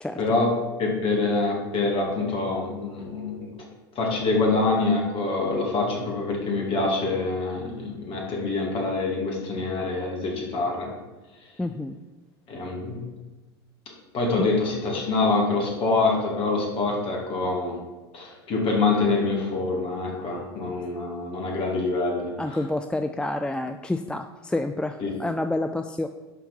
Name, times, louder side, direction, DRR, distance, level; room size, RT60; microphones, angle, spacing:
voice 1, 0.2-3.5 3.9-10.9 12.5-13.0 14.1-17.8 18.1-22.6 25.0-25.1, left 3 dB, 40° left, -1 dB, 2.8 m, -25 dB
voice 2, 11.6-12.0 14.4-14.5 22.4-26.1, left 2 dB, 5° left, 8 dB, 0.4 m, -28 dB
11.5 x 4.4 x 5.5 m, 1.2 s
figure-of-eight pair, 75°, 14 cm